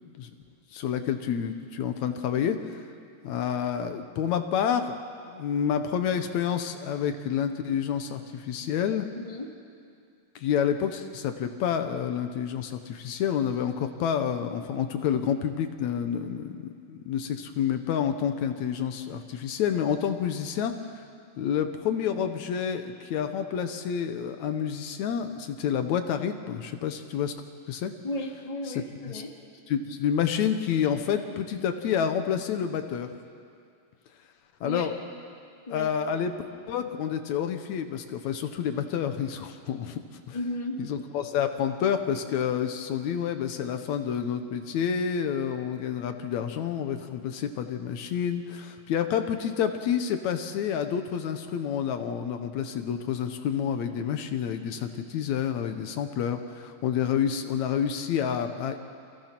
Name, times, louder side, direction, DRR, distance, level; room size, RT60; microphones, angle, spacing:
voice 1, 0.7-2.8 3.2-5.0 5.2-9.1 10.4-21.0 21.4-27.3 27.7-27.9 28.7-28.8 29.1-29.2 29.7-33.1 34.6-34.9 35.7-36.4 36.7-40.0 40.3-40.4 40.8-58.8, left 8 dB, 75° left, 7 dB, 2.3 m, -29 dB
voice 2, 9.1-9.5 28.0-29.3 34.6-34.9 35.7-36.2 40.3-40.8, left 1 dB, 15° left, 0 dB, 1.8 m, -35 dB
30.0 x 24.0 x 6.0 m, 2.4 s
omnidirectional pair, 3.3 m